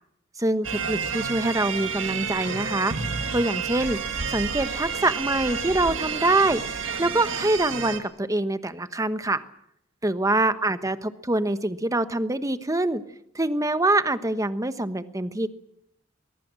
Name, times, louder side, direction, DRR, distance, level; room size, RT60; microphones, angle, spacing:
voice 1, 0.4-2.9 3.3-4.0 4.3-6.6 7.0-9.4 10.0-13.0 13.3-15.5, right 2 dB, 15° right, 11 dB, 1.1 m, -24 dB
sound 1, 0.6-8.0, right 6 dB, 70° right, 2.4 m, -30 dB
22.5 x 21.5 x 7.6 m, 0.74 s
head